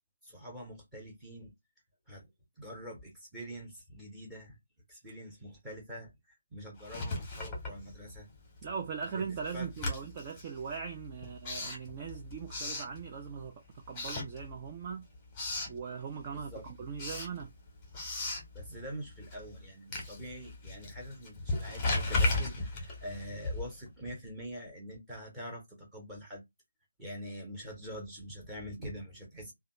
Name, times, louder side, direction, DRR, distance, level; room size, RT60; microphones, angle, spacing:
voice 1, 0.2-1.5 2.1-2.3 2.6-4.6 4.9-8.3 9.1-9.2 9.5-9.7 16.3-16.7 18.5-26.4 27.0-29.5, equal, 5° right, 1.1 m, -45 dB
Writing, 6.8-8.4 8.7-13.5 13.9-14.9 15.1-15.8 16.2-23.9, left 2 dB, 10° left, 1.1 m, -36 dB
voice 2, 8.6-15.0 15.7-17.5, right 6 dB, 25° right, 0.3 m, -40 dB
2.8 x 2.3 x 3.0 m
figure-of-eight pair, 150°, 0 cm